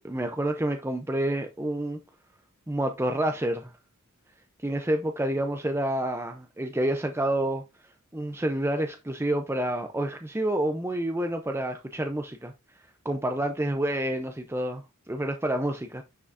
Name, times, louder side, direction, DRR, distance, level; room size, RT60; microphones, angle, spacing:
voice 1, 0.0-2.0 2.7-3.7 4.6-7.6 8.1-12.5 13.0-16.0, right 1 dB, 10° right, 0.6 m, -28 dB
9.5 x 6.0 x 2.7 m
head